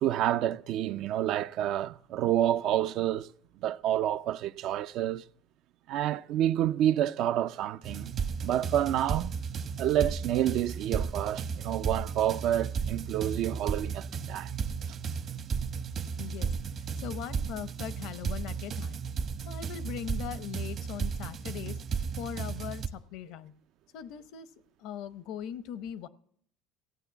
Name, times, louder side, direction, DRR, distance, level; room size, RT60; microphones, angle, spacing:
voice 1, 0.0-3.3 3.6-5.2 5.9-8.1 8.4-9.3 9.8-14.5, right 12 dB, 60° right, 0.4 m, -28 dB
sound 1, 7.8-22.9, right 6 dB, 45° right, 1.0 m, -34 dB
voice 2, 16.2-16.5 16.8-19.0 19.4-21.8 22.2-23.5 23.9-24.5 24.8-26.1, left 9 dB, 70° left, 0.7 m, -40 dB
15.5 x 9.0 x 6.9 m
cardioid pair, 125°, 0 cm